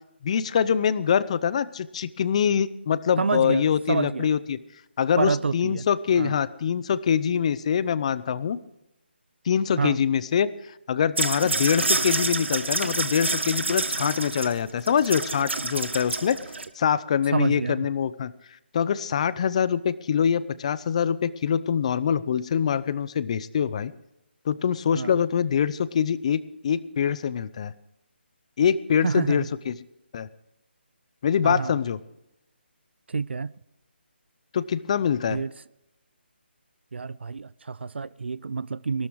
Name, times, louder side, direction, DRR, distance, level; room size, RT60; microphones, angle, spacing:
voice 1, 0.2-4.6 5.0-8.6 9.5-10.5 10.9-16.4 16.8-18.3 18.7-23.9 24.5-27.7 28.6-29.7 30.1-30.3 31.2-32.0 34.5-35.4, left 8 dB, 35° left, 0.6 m, -24 dB
voice 2, 3.2-4.3 5.2-5.8 6.1-6.4 9.8-10.0 17.3-17.9 24.9-25.1 29.0-29.5 31.4-31.7 33.1-33.5 35.3-35.5 36.9-39.1, right 4 dB, 70° right, 0.6 m, -28 dB
sound 1, 11.2-16.7, right 3 dB, 90° right, 1.5 m, -28 dB
18.0 x 13.0 x 4.7 m
figure-of-eight pair, 160°, 6 cm